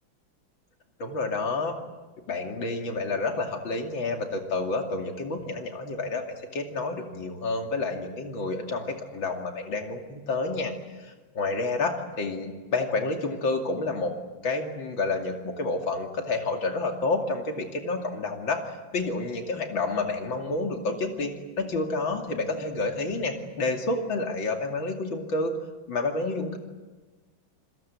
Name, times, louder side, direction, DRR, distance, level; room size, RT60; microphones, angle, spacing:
voice 1, 1.0-1.8 2.3-14.1 14.4-25.6 25.9-26.6, left 3 dB, 80° left, 3 dB, 3.3 m, -29 dB
28.5 x 21.0 x 8.3 m, 1.3 s
omnidirectional pair, 2.1 m